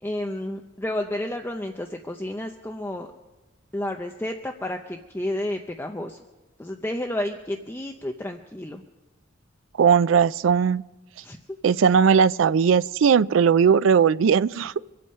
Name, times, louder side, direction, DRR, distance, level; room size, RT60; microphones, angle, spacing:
voice 1, 0.0-3.1 3.7-6.2 6.6-8.8 11.2-11.4, left 1 dB, 10° left, 0.6 m, -31 dB
voice 2, 9.8-10.8 11.6-14.7, right 6 dB, 85° right, 0.4 m, -18 dB
25.5 x 8.5 x 5.5 m
head